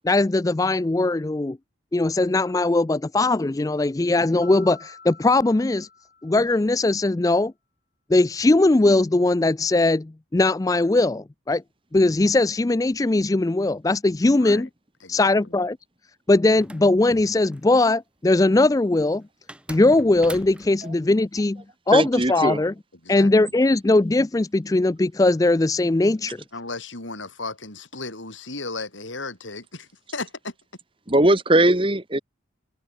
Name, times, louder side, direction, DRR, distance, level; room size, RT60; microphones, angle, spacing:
voice 1, 0.0-1.6 1.9-5.9 6.2-7.5 8.1-11.6 11.9-14.7 15.1-15.8 16.3-19.2 19.7-22.7 23.1-26.4, left 2 dB, 20° left, 0.3 m, -20 dB
Mallet percussion, 4.4-6.8, left 5 dB, 45° left, 7.9 m, -48 dB
voice 2, 14.4-14.7 15.0-15.5 23.0-23.3 26.5-30.5, left 3 dB, 80° left, 6.7 m, -35 dB
sound 1, 16.5-17.9 19.5-20.9, right 1 dB, 5° right, 6.7 m, -41 dB
voice 3, 21.9-22.6 31.1-32.2, right 1 dB, 25° right, 2.0 m, -19 dB
head